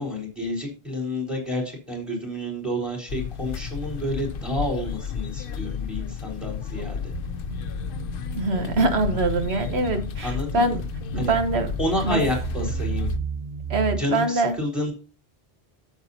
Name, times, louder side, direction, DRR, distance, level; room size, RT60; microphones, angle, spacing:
voice 1, 0.0-7.1 10.2-10.8 11.2-11.3 11.8-13.1 14.0-14.9, left 1 dB, ahead, 0 dB, 3.9 m, -29 dB
sound 1, 3.1-13.2, left 6 dB, 60° left, 0.8 m, -32 dB
sound 2, 7.1-14.0, right 6 dB, 45° right, 1.2 m, -34 dB
voice 2, 8.3-10.8 11.1-11.7 12.0-12.2 13.7-14.6, right 2 dB, 85° right, 7 dB, 1.5 m, -24 dB
12.0 x 7.8 x 2.7 m, 0.33 s
omnidirectional pair, 1.1 m